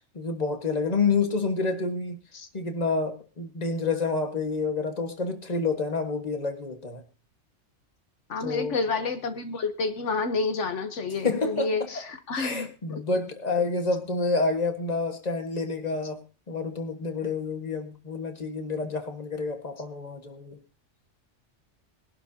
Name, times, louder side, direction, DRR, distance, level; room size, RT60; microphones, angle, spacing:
voice 1, 0.1-2.2 2.5-7.0 8.4-8.7 11.2-11.7 12.3-16.2 16.5-20.6, left 4 dB, 35° left, 6 dB, 1.6 m, -28 dB
voice 2, 8.3-13.0, left 4 dB, 80° left, 8 dB, 1.4 m, -29 dB
20.5 x 11.5 x 2.8 m, 0.32 s
omnidirectional pair, 1.2 m